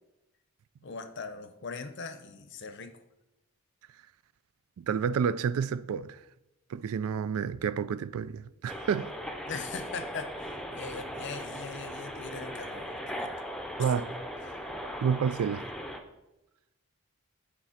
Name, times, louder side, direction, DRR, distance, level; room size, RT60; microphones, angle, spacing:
voice 1, 0.8-3.0 9.5-13.3 13.8-13.9 14.5-14.7, left 4 dB, 55° left, 0.7 m, -41 dB
voice 2, 4.8-6.2 6.7-9.1 13.8-14.1 15.0-15.7, right 7 dB, 75° right, 0.3 m, -29 dB
sound 1, 8.7-16.0, equal, ahead, 0.6 m, -39 dB
9.0 x 4.2 x 5.6 m
head